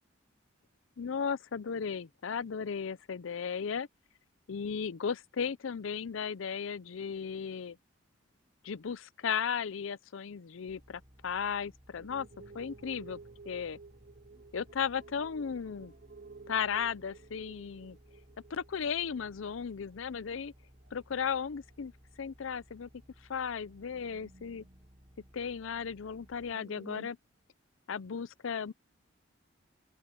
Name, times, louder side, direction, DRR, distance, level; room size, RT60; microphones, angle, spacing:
voice 1, 1.0-3.9 4.5-7.8 8.6-12.3 12.5-13.2 13.5-13.8 14.5-15.9 16.5-18.0 18.5-20.5 20.9-21.9 22.2-22.9 23.3-24.6 25.3-27.2 27.9-28.7, left 6 dB, 75° left, 0.5 m, -35 dB
sound 1, 10.7-26.5, equal, 25° right, 4.9 m, -60 dB
sound 2, 12.0-20.5 20.8-21.3 21.7-21.8 22.3-22.4 23.4-25.5 25.8-25.9 26.2-27.1, right 3 dB, 40° right, 0.9 m, -54 dB
open air
head